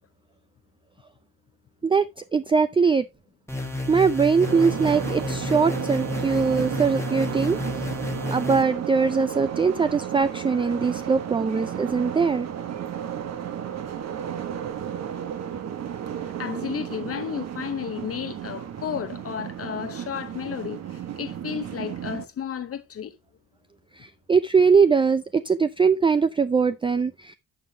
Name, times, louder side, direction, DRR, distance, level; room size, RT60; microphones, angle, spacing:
voice 1, 1.8-3.0 3.9-7.9 8.3-12.5 24.0-27.4, right 5 dB, 15° right, 0.4 m, -22 dB
sound 1, 3.5-8.6, left 2 dB, 10° left, 1.5 m, -31 dB
sound 2, 4.4-22.2, right 9 dB, 60° right, 1.2 m, -33 dB
voice 2, 15.8-23.2, left 8 dB, 50° left, 0.8 m, -33 dB
11.5 x 6.7 x 2.7 m
cardioid pair, 90°, 30 cm